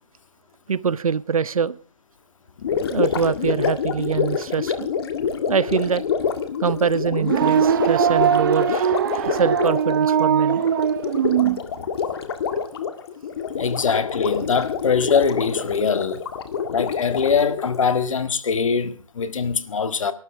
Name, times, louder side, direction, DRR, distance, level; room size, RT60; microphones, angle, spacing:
voice 1, 0.7-1.8 2.9-4.9 5.5-6.0 6.6-10.6, right 6 dB, 75° right, 0.9 m, -24 dB
Gurgling, 2.6-17.9, left 7 dB, 45° left, 1.8 m, -27 dB
sound 1, 7.2-11.6, right 9 dB, 40° right, 0.8 m, -20 dB
voice 2, 13.6-16.2 16.7-20.1, left 5 dB, 65° left, 1.7 m, -22 dB
28.0 x 12.5 x 3.4 m
hypercardioid pair, 155°, 18 cm